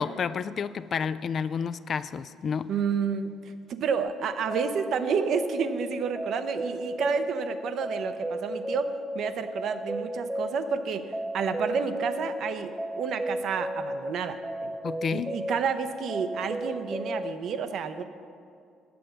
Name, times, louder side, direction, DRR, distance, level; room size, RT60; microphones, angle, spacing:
voice 1, 0.0-2.7 14.8-15.3, left 6 dB, 50° left, 14 dB, 0.3 m, -30 dB
voice 2, 2.7-11.1 11.3-14.8 15.1-18.0, right 6 dB, 60° right, 9 dB, 0.6 m, -30 dB
sound 1, 4.1-17.3, equal, 5° right, 0.6 m, -34 dB
9.3 x 7.6 x 6.5 m, 2.3 s
hypercardioid pair, 50°, 0 cm